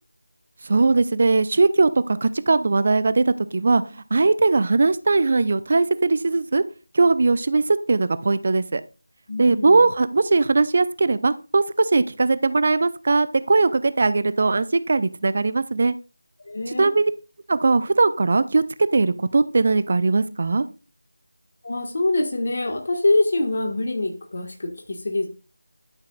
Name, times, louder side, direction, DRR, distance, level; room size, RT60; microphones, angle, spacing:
voice 1, 0.6-3.8 4.1-6.6 6.9-8.8 9.4-16.0 16.8-17.1 17.5-18.6 18.9-20.7, right 3 dB, 40° right, 0.5 m, -20 dB
voice 2, 9.3-9.8 16.4-17.0 21.6-25.3, left 2 dB, 45° left, 1.6 m, -24 dB
11.5 x 5.8 x 2.4 m
figure-of-eight pair, 165°, 0 cm